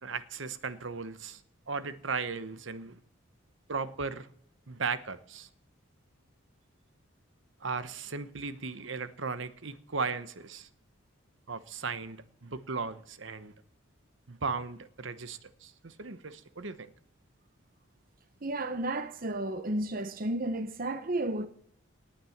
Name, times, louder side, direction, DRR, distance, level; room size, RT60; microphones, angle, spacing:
voice 1, 0.0-1.4 1.7-3.0 3.7-4.3 4.7-5.5 7.6-10.7 11.5-13.5 14.3-16.9, right 4 dB, 65° right, 1.0 m, -36 dB
voice 2, 18.4-21.5, right 1 dB, 45° right, 0.8 m, -32 dB
19.0 x 8.9 x 7.2 m
head